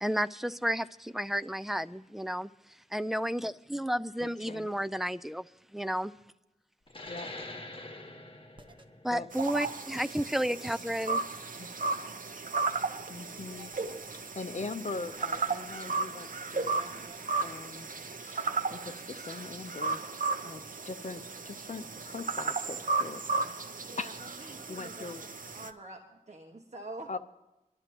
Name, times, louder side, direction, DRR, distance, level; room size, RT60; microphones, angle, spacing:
voice 1, 0.0-2.5 2.9-5.4 5.7-6.1 9.0-11.3, equal, ahead, 13 dB, 0.4 m, -32 dB
sound 1, 6.9-12.0, left 2 dB, 35° left, 1.9 m, -46 dB
sound 2, 8.6-8.8 10.2-10.4 11.8-12.1 13.4-14.2 15.0-15.8 16.6-17.8, right 1 dB, 35° right, 1.2 m, -55 dB
sound 3, 9.3-25.7, right 4 dB, 70° right, 0.8 m, -35 dB
voice 2, 13.1-13.7 14.3-16.9 17.4-17.9 18.2-20.0 20.4-23.2 24.0-25.2 27.1-27.2, left 3 dB, 55° left, 9 dB, 0.8 m, -41 dB
voice 3, 23.8-25.3 25.5-27.1, right 2 dB, 50° right, 1 dB, 1.6 m, -46 dB
24.0 x 12.5 x 3.0 m, 0.97 s
wide cardioid pair, 80°, 14 cm